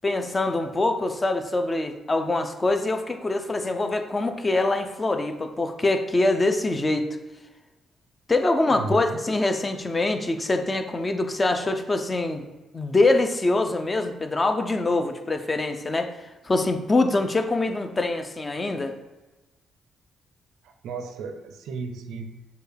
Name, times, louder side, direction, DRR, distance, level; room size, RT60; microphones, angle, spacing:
voice 1, 0.0-7.1 8.3-12.4 12.7-16.1 16.4-18.9, left 2 dB, 25° left, 6 dB, 0.5 m, -24 dB
voice 2, 8.7-9.2 20.6-22.5, right 4 dB, 80° right, 6 dB, 0.4 m, -35 dB
6.7 x 2.3 x 3.3 m, 1.1 s
cardioid pair, 90°, 0 cm